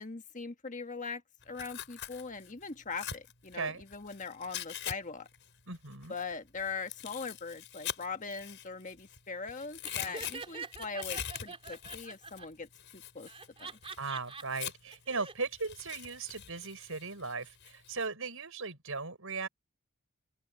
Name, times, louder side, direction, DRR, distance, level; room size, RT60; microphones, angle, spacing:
voice 1, 0.0-5.3 6.1-13.3 13.6-13.8, left 4 dB, 35° left, 1.5 m, -41 dB
Tearing, 1.4-4.9 5.2-9.2 9.5-15.0 15.5-18.1, left 10 dB, 55° left, 6.6 m, -43 dB
voice 2, 5.7-6.1 14.0-19.5, right 4 dB, 65° right, 6.0 m, -37 dB
Laughter, 9.8-12.4 13.3-14.4 14.9-15.3, right 4 dB, 25° right, 4.0 m, -44 dB
open air
head